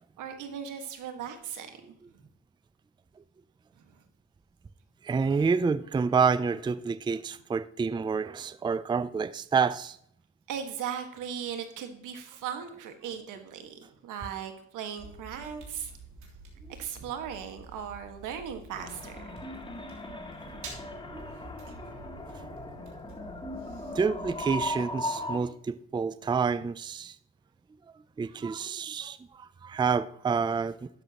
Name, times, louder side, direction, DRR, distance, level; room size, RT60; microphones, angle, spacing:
voice 1, 0.2-1.8 3.9-4.0 10.5-16.0 16.8-19.2 21.7-22.1 23.6-23.9 26.2-26.3 28.2-28.5, right 8 dB, 90° right, 1.7 m, -38 dB
voice 2, 5.0-10.0 21.1-21.2 24.0-27.1 28.2-30.8, right 5 dB, 15° right, 0.4 m, -28 dB
sound 1, 15.0-24.7, right 3 dB, 70° right, 3.4 m, -49 dB
sound 2, 18.7-25.4, left 1 dB, 15° left, 1.7 m, -38 dB
12.5 x 10.5 x 2.9 m
cardioid pair, 90°, 30 cm